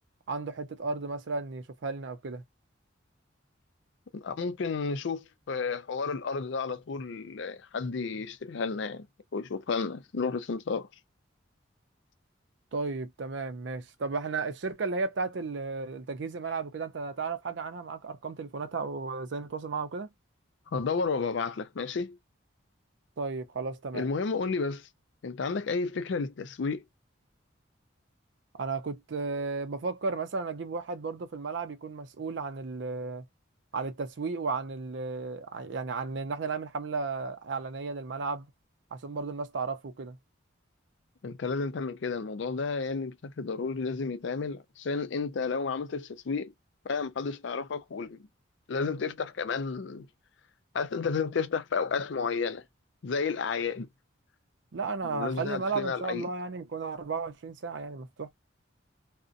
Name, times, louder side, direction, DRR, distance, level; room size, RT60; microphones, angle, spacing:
voice 1, 0.3-2.4 12.7-20.1 23.2-24.1 28.6-33.2 33.7-38.5 38.9-40.2 54.7-58.3, right 4 dB, 65° right, 0.5 m, -34 dB
voice 2, 4.1-9.1 9.3-10.9 20.7-22.2 23.9-24.9 25.2-26.8 41.2-46.5 46.8-48.2 48.7-50.1 50.7-52.6 53.0-53.9 55.0-56.2, left 4 dB, 65° left, 0.4 m, -32 dB
2.5 x 2.1 x 2.5 m
head